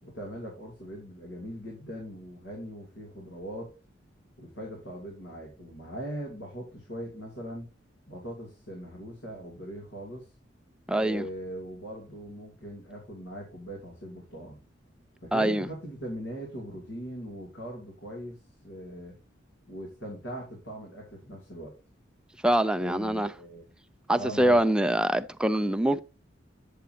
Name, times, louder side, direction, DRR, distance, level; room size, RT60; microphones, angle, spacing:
voice 1, 0.0-3.7 4.4-7.7 8.1-10.3 10.9-14.6 15.2-19.2 19.7-21.7 22.8-23.7 24.1-24.6, equal, 85° left, 2.7 m, -40 dB
voice 2, 10.9-11.3 15.3-15.7 22.4-23.3 24.1-26.0, right 1 dB, 5° right, 0.3 m, -24 dB
8.5 x 6.7 x 2.8 m
head